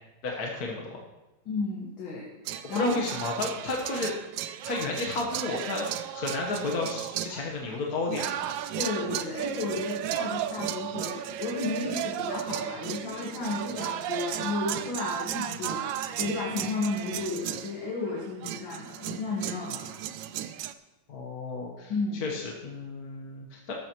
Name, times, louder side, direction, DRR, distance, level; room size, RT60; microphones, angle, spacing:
voice 1, 0.2-1.0 2.7-4.1 4.6-8.5 21.1-21.9 22.2-23.7, left 3 dB, 50° left, 0 dB, 1.6 m, -32 dB
voice 2, 1.5-2.3 2.7-2.9 8.7-19.9 21.9-22.2, left 3 dB, 70° left, -4 dB, 2.4 m, -33 dB
sound 1, 2.5-20.7, right 11 dB, 75° right, 1.2 m, -34 dB
13.5 x 12.5 x 3.0 m, 1.0 s
omnidirectional pair, 2.2 m